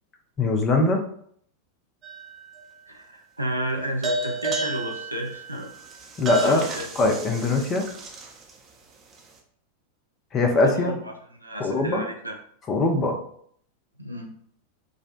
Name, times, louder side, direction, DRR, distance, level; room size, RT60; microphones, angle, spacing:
voice 1, 0.4-1.0 6.2-6.7 7.0-7.8 10.3-11.0 11.6-12.0 12.7-13.2, left 2 dB, 25° left, 4 dB, 0.6 m, -22 dB
sound 1, 2.0-2.6 4.0-8.5, right 2 dB, 30° right, 0.7 m, -32 dB
voice 2, 2.9-5.7 6.3-6.9 10.6-12.4 14.0-14.3, right 1 dB, 85° right, 2 dB, 0.5 m, -32 dB
4.9 x 2.2 x 2.5 m, 0.63 s
figure-of-eight pair, 90°, 0 cm